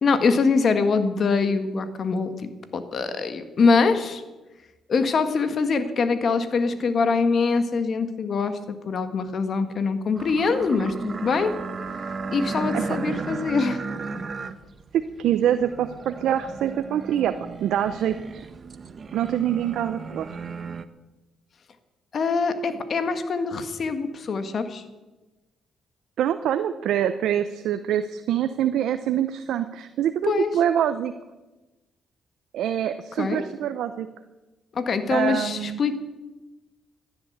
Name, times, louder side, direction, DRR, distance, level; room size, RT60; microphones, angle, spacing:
voice 1, 0.0-2.3 2.7-4.2 4.9-8.6 8.9-11.5 12.3-13.8 22.1-24.8 30.2-30.5 33.2-33.4 34.8-36.0, left 4 dB, 50° left, 9 dB, 1.8 m, -23 dB
sound 1, 10.1-20.8, right 4 dB, 40° right, 1.0 m, -35 dB
voice 2, 14.9-18.4 19.1-20.3 26.2-31.1 32.5-34.1 35.1-35.8, right 10 dB, 80° right, 10 dB, 0.7 m, -25 dB
15.0 x 10.5 x 8.1 m, 1.1 s
cardioid pair, 90°, 0 cm